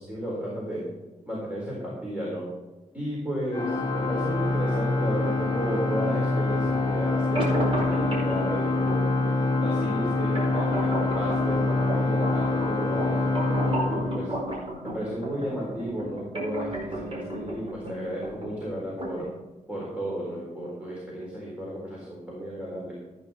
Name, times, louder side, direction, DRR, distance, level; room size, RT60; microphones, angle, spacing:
voice 1, 0.1-0.8 1.3-2.5 2.9-9.0 9.5-14.3 14.8-19.2 19.7-22.9, equal, 10° right, -6 dB, 4.1 m, -33 dB
Organ, 3.5-14.7, left 2 dB, 30° left, 1.3 m, -26 dB
sound 1, 7.4-19.4, right 1 dB, 45° right, 4.6 m, -34 dB
14.5 x 9.5 x 4.4 m, 1.1 s
wide cardioid pair, 125°, 14 cm